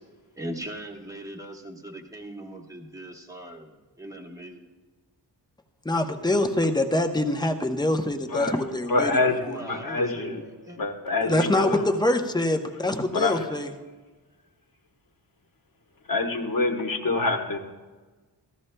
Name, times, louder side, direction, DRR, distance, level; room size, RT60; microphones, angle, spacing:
voice 1, 0.4-4.7 9.3-10.8, right 1 dB, 10° right, 1 dB, 1.0 m, -39 dB
voice 2, 5.8-9.1 11.3-13.7, left 1 dB, 10° left, 5 dB, 0.7 m, -24 dB
voice 3, 8.9-10.4 10.8-11.9 13.1-13.4 16.1-17.6, left 3 dB, 50° left, 4 dB, 1.1 m, -26 dB
16.0 x 13.5 x 2.2 m, 1.3 s
wide cardioid pair, 135°, 43 cm